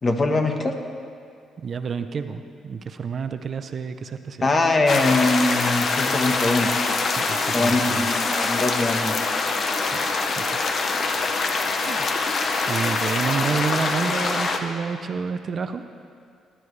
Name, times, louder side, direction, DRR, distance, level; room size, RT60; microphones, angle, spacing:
voice 1, 0.0-0.8 4.4-6.7 7.5-9.3, left 2 dB, 35° left, 4 dB, 1.3 m, -22 dB
voice 2, 1.6-4.4 7.1-8.1 9.8-10.0 10.4-10.6 11.2-11.4 11.8-12.1 12.7-15.8, right 6 dB, 50° right, 9 dB, 0.6 m, -29 dB
sound 1, 4.9-14.6, left 3 dB, 50° left, 1.0 m, -24 dB
20.0 x 11.5 x 3.3 m, 2.3 s
cardioid pair, 90°, 0 cm